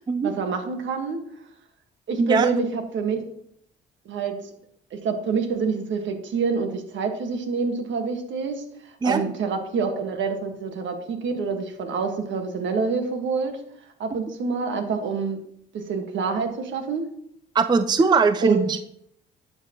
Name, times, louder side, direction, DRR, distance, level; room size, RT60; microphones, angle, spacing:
voice 1, 0.2-1.2 2.1-3.2 4.0-4.3 4.9-13.5 14.0-15.4 15.7-17.1 18.4-18.7, right 5 dB, 70° right, 5 dB, 1.6 m, -27 dB
voice 2, 2.2-2.5 9.0-9.2 17.5-18.8, right 4 dB, 20° right, 11 dB, 0.5 m, -20 dB
11.0 x 6.8 x 3.0 m, 0.70 s
cardioid pair, 90°, 20 cm